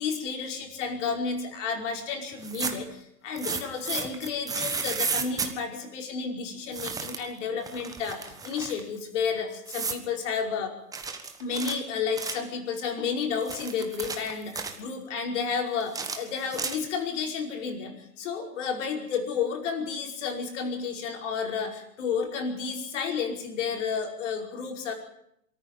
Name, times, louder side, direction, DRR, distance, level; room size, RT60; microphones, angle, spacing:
voice 1, 0.0-10.7 11.4-24.9, left 6 dB, 50° left, 3 dB, 5.2 m, -31 dB
sound 1, 2.3-2.9 3.4-5.5 6.7-7.3 7.6-8.8 9.7-10.0 10.9-12.5 13.2-14.8 15.8-17.1, right 5 dB, 10° right, 1.4 m, -33 dB
23.0 x 14.0 x 8.9 m, 0.74 s
hypercardioid pair, 130°, 46 cm